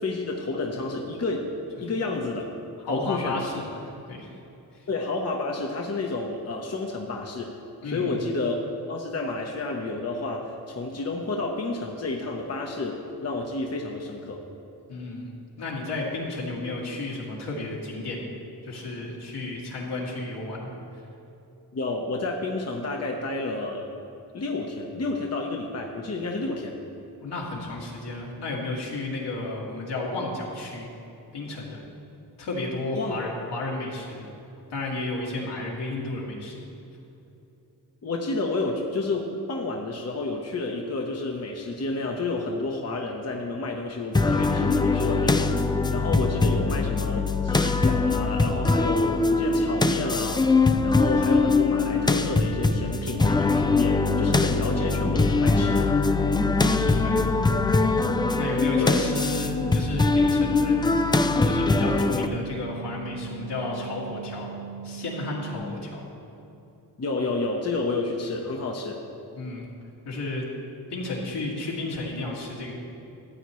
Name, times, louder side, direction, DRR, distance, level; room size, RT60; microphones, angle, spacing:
voice 1, 0.0-1.5 1.8-2.4 2.8-3.4 4.9-7.5 7.8-14.4 21.7-23.9 24.3-26.8 32.9-33.1 38.0-50.4 50.8-55.9 58.8-59.1 67.0-69.0, left 3 dB, 35° left, 0 dB, 0.9 m, -30 dB
voice 2, 2.9-4.4 7.8-8.2 14.9-15.3 15.6-18.2 18.6-20.7 27.2-30.9 31.3-31.8 32.4-34.3 34.7-36.7 54.5-54.6 56.9-57.2 58.4-61.0 61.4-64.5 64.8-66.0 69.4-69.7 70.0-70.5 70.9-72.7, left 2 dB, 75° left, -4 dB, 2.3 m, -32 dB
sound 1, 44.2-62.3, left 3 dB, 10° left, 0.3 m, -22 dB
sound 2, 50.7-65.6, right 8 dB, 60° right, 1.9 m, -39 dB
14.0 x 8.1 x 3.1 m, 2.8 s
cardioid pair, 70°, 42 cm